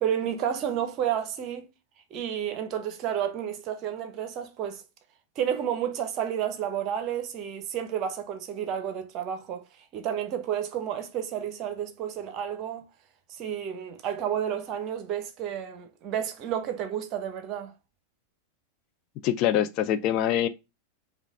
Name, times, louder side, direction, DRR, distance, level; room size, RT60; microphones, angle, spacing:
voice 1, 0.0-1.7 2.1-4.8 5.4-9.7 9.9-12.9 13.3-17.7, right 9 dB, 35° right, 0.8 m, -31 dB
voice 2, 19.2-20.5, left 11 dB, 40° left, 0.4 m, -24 dB
5.1 x 2.4 x 3.6 m
figure-of-eight pair, 90°, 0 cm